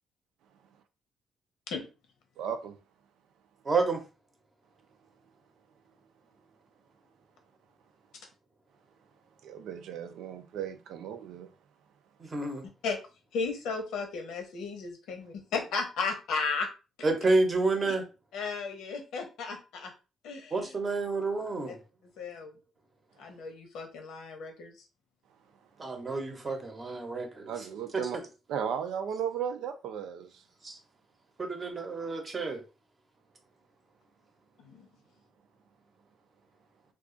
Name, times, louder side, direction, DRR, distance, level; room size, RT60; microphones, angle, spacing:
voice 1, 2.4-2.7 9.4-11.5 27.5-28.2 28.5-30.4, right 8 dB, 85° right, 0.4 m, -35 dB
voice 2, 3.6-4.0 12.2-12.7 17.0-18.0 20.5-21.8 25.8-27.5 30.6-30.8 31.4-32.6, right 3 dB, 25° right, 0.8 m, -29 dB
voice 3, 13.3-16.7 17.8-17.9 18.3-19.9 20.2-20.7 21.7-21.8 22.2-22.5 23.2-24.8 34.6-34.9, left 4 dB, 85° left, 0.8 m, -34 dB
2.4 x 2.3 x 3.7 m
cardioid pair, 140°, 0 cm